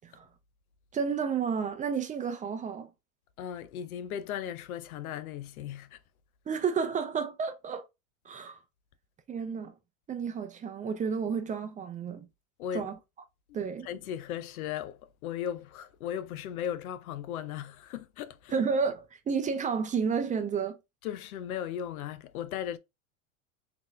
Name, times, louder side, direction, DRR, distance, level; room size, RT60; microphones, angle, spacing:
voice 1, 0.9-2.9 6.5-7.9 8.3-8.6 9.3-9.7 10.1-12.3 12.7-13.0 13.5-13.9 18.5-20.8, right 6 dB, 20° right, 0.5 m, -31 dB
voice 2, 3.4-6.0 12.6-12.9 13.5-18.5 21.0-22.8, left 9 dB, 85° left, 0.6 m, -37 dB
3.8 x 2.8 x 2.4 m
hypercardioid pair, 105°, 42 cm